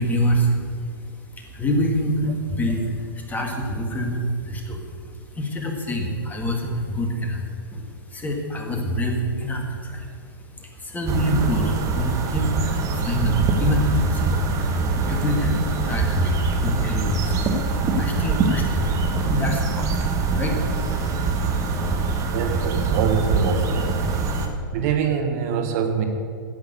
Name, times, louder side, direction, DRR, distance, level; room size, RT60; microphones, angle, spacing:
voice 1, 0.0-18.9 19.2-21.3 21.6-21.8, equal, 15° left, 2 dB, 1.9 m, -26 dB
sound 1, 11.1-24.5, right 4 dB, 30° right, 1.5 m, -23 dB
voice 2, 22.3-24.1 24.7-26.0, right 6 dB, 45° right, 5 dB, 1.4 m, -24 dB
10.5 x 8.9 x 8.1 m, 2.2 s
figure-of-eight pair, 105°, 12 cm